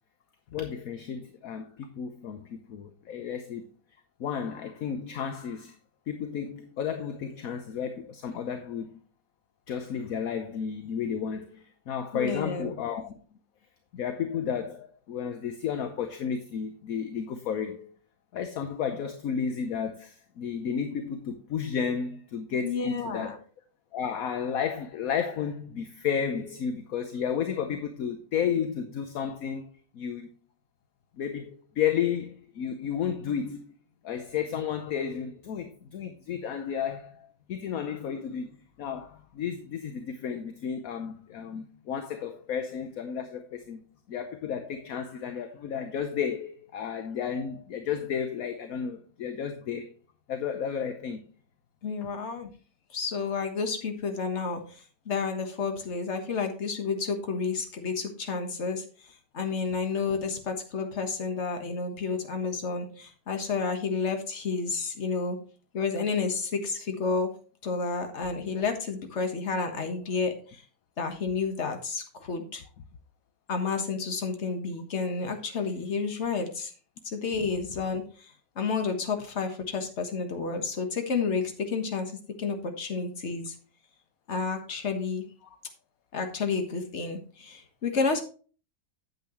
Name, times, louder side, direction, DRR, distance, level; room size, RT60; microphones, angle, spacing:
voice 1, 0.5-3.6 4.2-5.7 6.1-9.0 9.7-13.1 13.9-17.9 18.3-23.4 23.9-29.7 29.9-30.3 31.2-33.7 34.0-43.8 44.1-49.9 50.3-51.2, left 7 dB, 60° left, 1.1 m, -32 dB
voice 2, 12.1-12.7 22.6-23.4 51.8-52.5 52.9-58.8 59.3-65.4 65.7-67.3 67.6-70.6 71.0-72.6 73.5-76.7 77.0-83.5 84.3-85.2 86.1-88.2, left 4 dB, 40° left, 1.5 m, -30 dB
9.1 x 7.9 x 3.1 m
omnidirectional pair, 2.0 m